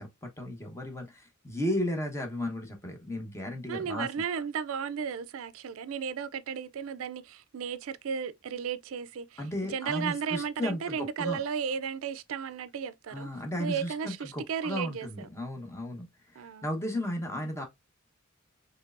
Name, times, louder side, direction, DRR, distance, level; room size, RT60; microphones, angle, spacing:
voice 1, 0.0-4.1 9.4-11.4 13.1-17.6, left 1 dB, 15° left, 1.0 m, -34 dB
voice 2, 3.7-9.4 9.7-13.3 13.6-15.3 16.4-16.7, right 7 dB, 80° right, 0.4 m, -34 dB
4.5 x 3.2 x 2.5 m
head